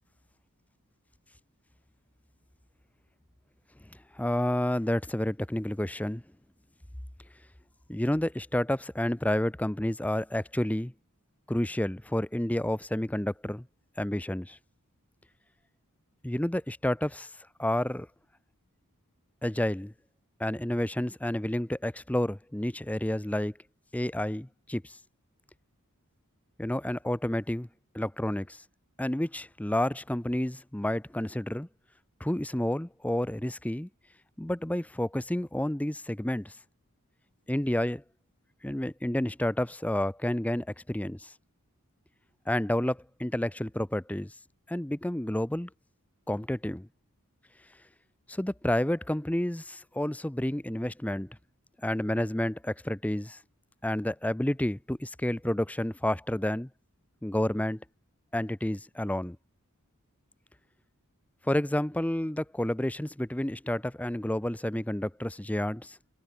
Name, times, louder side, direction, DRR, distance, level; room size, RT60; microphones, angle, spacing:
voice 1, 4.1-6.2 7.9-10.9 11.5-13.7 14.0-14.6 16.2-17.3 17.6-18.1 19.4-19.9 20.4-23.5 23.9-24.9 26.6-27.7 27.9-28.6 29.0-31.7 32.2-33.9 34.4-36.5 37.5-38.0 38.6-41.3 42.5-44.3 44.7-45.7 46.3-46.9 48.3-51.4 51.8-53.4 53.8-56.7 57.2-57.8 58.3-59.4 61.4-66.0, left 1 dB, 5° left, 0.6 m, -30 dB
head